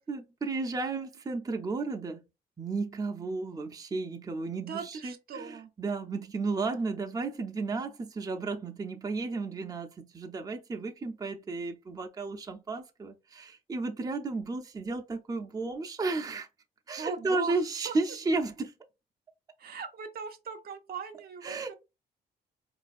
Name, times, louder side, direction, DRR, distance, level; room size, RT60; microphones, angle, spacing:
voice 1, 0.1-2.2 2.6-16.5 16.9-18.7 21.4-21.7, right 3 dB, 20° right, 0.5 m, -33 dB
voice 2, 4.6-5.7 17.0-17.6 17.8-18.0 19.6-21.7, right 6 dB, 60° right, 0.7 m, -38 dB
3.9 x 2.5 x 2.4 m
cardioid pair, 85°, 18 cm